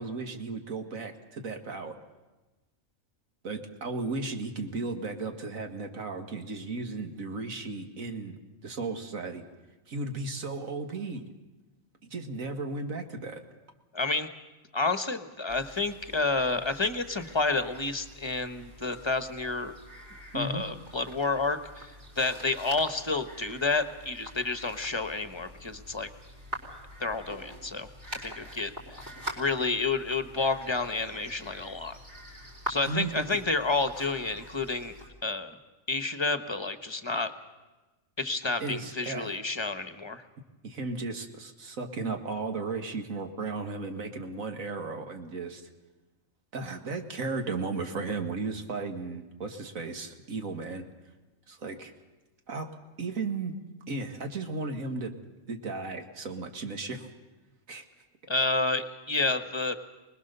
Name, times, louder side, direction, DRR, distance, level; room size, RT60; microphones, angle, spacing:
voice 1, 0.0-2.0 3.4-9.4 9.9-11.3 12.0-13.4 20.3-20.6 32.9-33.4 38.6-39.4 40.6-45.7 46.5-50.8 51.5-51.9 52.5-52.7 53.0-53.5 53.9-55.2 55.5-57.1 57.7-57.8, right 3 dB, 85° right, 6 dB, 2.2 m, -35 dB
voice 2, 13.9-14.3 14.7-19.7 20.3-21.9 22.2-26.1 27.0-27.9 28.2-28.7 29.4-32.0 32.7-34.9 35.2-35.6 35.9-37.3 38.2-40.2 58.3-59.8, left 3 dB, 20° left, 10 dB, 1.1 m, -30 dB
sound 1, 15.5-35.1, equal, 40° right, 4.1 m, -45 dB
25.0 x 20.0 x 6.8 m, 1.1 s
omnidirectional pair, 1.4 m